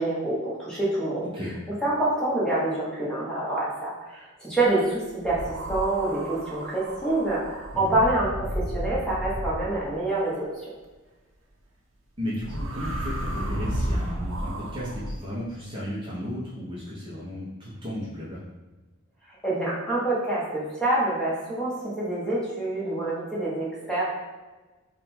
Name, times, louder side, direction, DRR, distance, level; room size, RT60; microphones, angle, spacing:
voice 1, 0.0-1.2 1.8-5.4 5.7-8.3 8.5-10.7 19.4-24.1, right 2 dB, 5° left, -7 dB, 0.9 m, -26 dB
sound 1, 5.2-10.0 12.3-15.1, right 1 dB, 65° right, 0.7 m, -32 dB
voice 2, 12.2-18.4, equal, 25° right, -7 dB, 0.6 m, -34 dB
3.7 x 2.2 x 4.2 m, 1.2 s
head